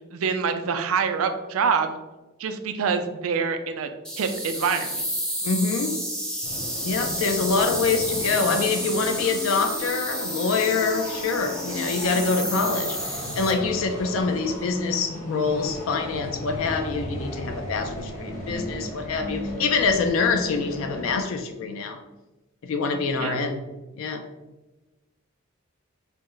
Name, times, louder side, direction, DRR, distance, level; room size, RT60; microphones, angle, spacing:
voice 1, 0.1-1.9 2.4-3.9 4.2-5.0 23.2-23.4, right 5 dB, 85° right, 7 dB, 0.4 m, -25 dB
sound 1, 4.0-13.5, equal, 5° left, 0.5 m, -31 dB
voice 2, 5.4-5.9 6.8-22.0 22.6-23.6 24.0-24.2, left 4 dB, 70° left, 6 dB, 0.4 m, -25 dB
sound 2, 6.4-21.2, left 1 dB, 40° left, 0.9 m, -35 dB
4.2 x 2.1 x 3.7 m, 1.1 s
head